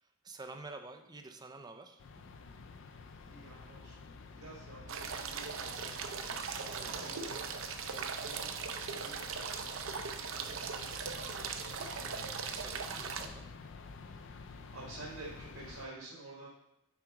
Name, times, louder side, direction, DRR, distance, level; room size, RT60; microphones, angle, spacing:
voice 1, 0.0-2.0 6.6-7.2 10.6-10.7 12.5-13.5, right 3 dB, 20° right, 6 dB, 0.5 m, -49 dB
sound 1, 2.0-15.9, left 4 dB, 60° left, 0.4 m, -50 dB
voice 2, 3.2-4.1 4.4-6.0 6.8-7.5 8.2-12.1 14.7-16.5, right 2 dB, 85° right, -7 dB, 1.7 m, -51 dB
sound 2, 4.9-13.3, right 6 dB, 65° right, 0.5 m, -39 dB
5.9 x 4.9 x 3.6 m, 0.83 s
head